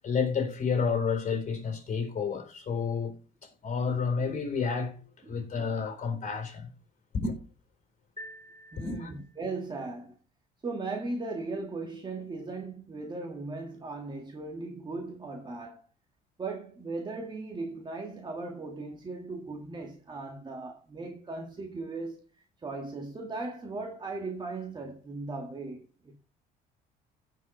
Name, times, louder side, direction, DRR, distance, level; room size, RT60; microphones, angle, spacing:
voice 1, 0.0-3.1 3.4-6.7 7.1-7.3 8.8-9.1, left 5 dB, 45° left, 4.0 m, -30 dB
voice 2, 5.2-5.6 8.7-10.2 10.6-15.9 16.4-22.2 22.6-26.2, right 3 dB, 25° right, 1.8 m, -38 dB
sound 1, 8.2-9.6, equal, 25° left, 3.1 m, -48 dB
16.0 x 5.5 x 3.2 m
cardioid pair, 110°, 17 cm